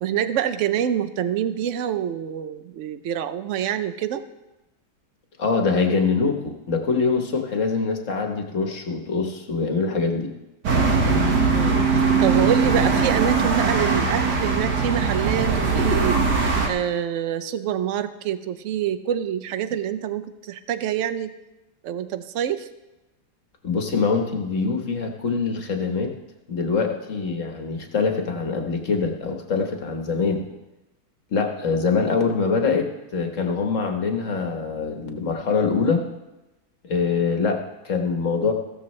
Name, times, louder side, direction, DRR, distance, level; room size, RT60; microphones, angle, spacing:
voice 1, 0.0-4.2 11.5-16.2 16.7-21.3 21.8-22.7, right 9 dB, 60° right, 12 dB, 0.9 m, -26 dB
voice 2, 5.4-10.3 23.6-26.1 26.5-30.4 31.3-36.0 36.9-38.5, left 4 dB, 50° left, 3 dB, 1.6 m, -24 dB
sound 1, 10.6-16.7, right 4 dB, 85° right, 2.2 m, -20 dB
15.5 x 13.5 x 3.2 m, 1.0 s
omnidirectional pair, 1.7 m